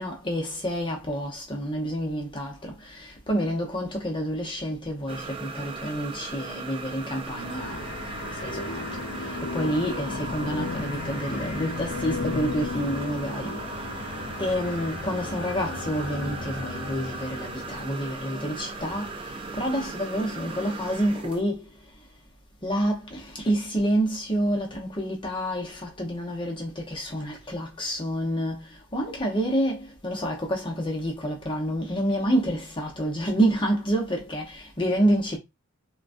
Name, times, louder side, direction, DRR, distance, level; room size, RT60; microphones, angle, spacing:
voice 1, 0.0-7.9 8.4-8.8 9.4-13.6 14.4-19.1 19.6-21.6 22.6-28.6 28.9-35.4, equal, 20° left, 0.8 m, -28 dB
sound 1, 5.1-21.4, right 3 dB, 25° right, 0.4 m, -37 dB
sound 2, 7.4-17.9, left 4 dB, 65° left, 0.6 m, -35 dB
3.8 x 2.3 x 2.5 m
head